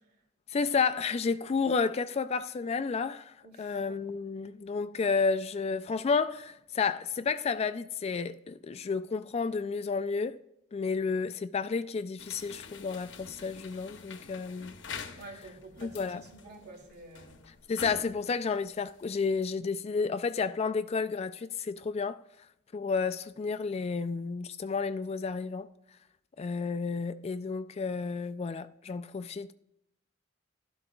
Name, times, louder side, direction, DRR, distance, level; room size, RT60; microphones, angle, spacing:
voice 1, 0.5-10.4 10.7-14.7 15.8-16.3 17.7-22.2 22.7-25.7 26.4-29.5, left 5 dB, 35° left, 0.3 m, -31 dB
voice 2, 3.4-3.8 15.2-17.4, right 2 dB, 60° right, 2.5 m, -49 dB
sound 1, 12.2-19.4, left 5 dB, 70° left, 0.9 m, -47 dB
16.0 x 12.5 x 2.3 m
head